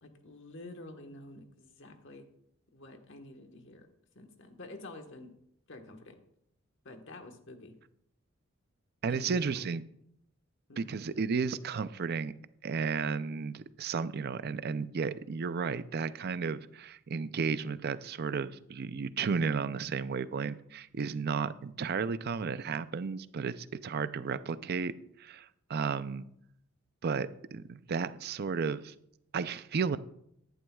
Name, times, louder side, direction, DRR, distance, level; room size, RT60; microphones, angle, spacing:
voice 1, 0.0-2.2 2.7-3.9 4.1-5.3 5.7-6.2 6.8-7.7 9.1-9.7 10.7-10.9, left 2 dB, 60° left, 5 dB, 1.3 m, -48 dB
voice 2, 9.0-9.8 10.8-12.3 12.6-24.9 25.2-26.3 27.0-28.9 29.3-30.0, right 5 dB, 50° right, 14 dB, 0.4 m, -33 dB
15.0 x 11.0 x 2.3 m, 0.74 s
head